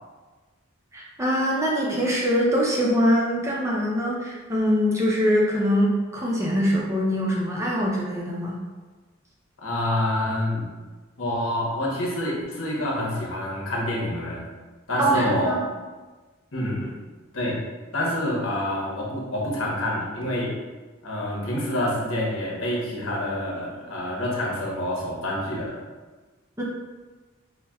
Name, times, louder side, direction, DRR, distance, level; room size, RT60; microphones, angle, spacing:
voice 1, 0.9-8.6 15.0-15.6 26.6-26.7, equal, 15° right, -4 dB, 0.5 m, -23 dB
voice 2, 9.6-10.8 11.2-14.5 14.9-15.6 16.5-17.0 17.3-17.6 17.9-20.5 21.0-25.8, left 1 dB, 80° left, -3 dB, 1.0 m, -27 dB
5.6 x 2.1 x 2.3 m, 1.3 s
head